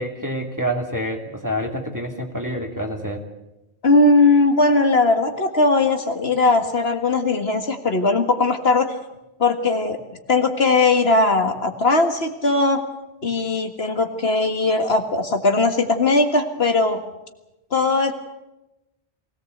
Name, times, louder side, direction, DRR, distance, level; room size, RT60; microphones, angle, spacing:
voice 1, 0.0-3.2, equal, 15° right, 3 dB, 2.5 m, -27 dB
voice 2, 3.8-8.9 9.4-10.0 10.3-12.8 13.2-17.0 17.7-18.1, left 3 dB, 65° left, 5 dB, 2.1 m, -19 dB
23.5 x 18.0 x 8.0 m, 0.97 s
omnidirectional pair, 1.1 m